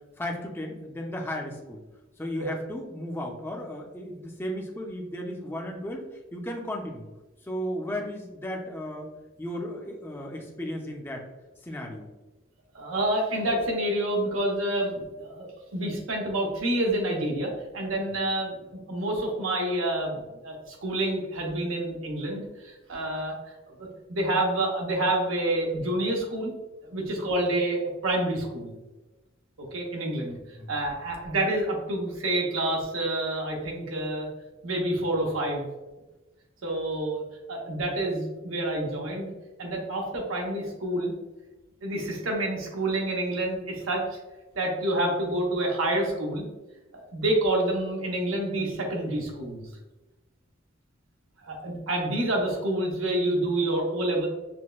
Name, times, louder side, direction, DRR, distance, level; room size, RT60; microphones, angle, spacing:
voice 1, 0.2-1.8 2.2-7.1 7.4-9.1 9.4-11.2 11.6-12.1 30.6-30.7, equal, 10° left, 0 dB, 0.5 m, -35 dB
voice 2, 12.7-15.5 15.7-23.4 23.8-26.5 26.8-28.7 29.7-34.3 34.6-35.7 36.6-39.3 39.6-41.1 41.8-44.2 44.6-46.5 46.9-49.7 51.4-54.3, right 1 dB, 85° right, 0 dB, 0.9 m, -28 dB
6.1 x 2.1 x 2.3 m, 1.1 s
head